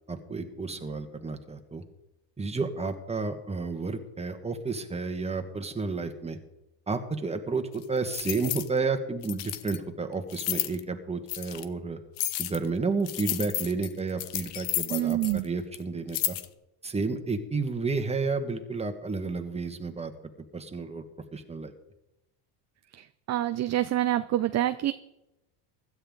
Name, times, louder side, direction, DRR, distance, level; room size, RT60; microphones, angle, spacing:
voice 1, 0.1-1.8 2.4-6.4 6.9-12.0 12.4-16.4 16.8-20.1 20.5-21.0 21.3-21.7, right 4 dB, 15° right, 6 dB, 1.7 m, -31 dB
sound 1, 7.8-8.7 9.2-9.8 10.3-10.8 11.3-11.6 12.2-12.7 13.1-15.5 15.7-15.8 16.1-16.5, left 14 dB, 65° left, 1.1 m, -32 dB
voice 2, 14.9-15.5 23.0-24.9, right 13 dB, 35° right, 11 dB, 0.6 m, -27 dB
16.0 x 12.5 x 4.0 m, 0.90 s
supercardioid pair, 110°, 46 cm